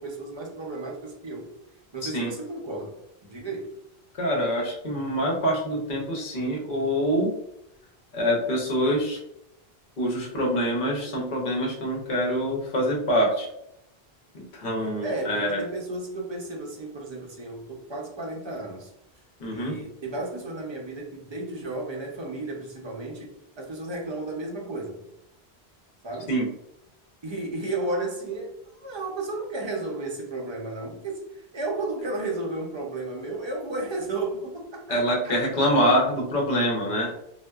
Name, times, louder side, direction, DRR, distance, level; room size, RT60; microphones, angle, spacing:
voice 1, 0.0-1.5 1.9-2.9 3.2-3.7 15.0-18.9 19.5-25.0 26.0-26.3 27.2-28.5 28.8-35.4, right 2 dB, 40° right, -1 dB, 0.4 m, -33 dB
voice 2, 2.0-2.3 4.1-7.3 8.1-9.2 10.0-13.5 14.3-15.6 19.4-19.8 26.3-26.4 34.9-37.1, equal, 55° left, -1 dB, 0.8 m, -25 dB
2.6 x 2.1 x 2.2 m, 0.80 s
omnidirectional pair, 1.0 m